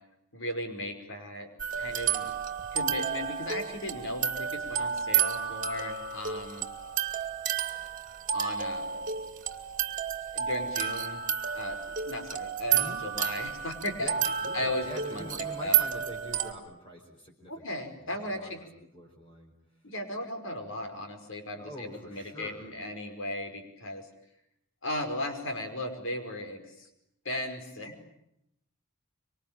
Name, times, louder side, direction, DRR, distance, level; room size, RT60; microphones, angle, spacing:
voice 1, 0.3-1.5 1.8-2.3 2.7-6.7 8.3-9.2 10.3-11.2 11.5-14.1 14.5-15.8 17.5-18.6 19.8-24.1 24.8-26.9 27.3-28.1, left 1 dB, 60° left, 6 dB, 5.4 m, -36 dB
sound 1, 1.6-16.5, right 8 dB, 35° right, 2.4 m, -31 dB
voice 2, 14.0-18.7 18.9-19.5 21.6-22.7, equal, 25° left, 1 dB, 4.7 m, -45 dB
26.0 x 25.0 x 9.0 m, 0.80 s
head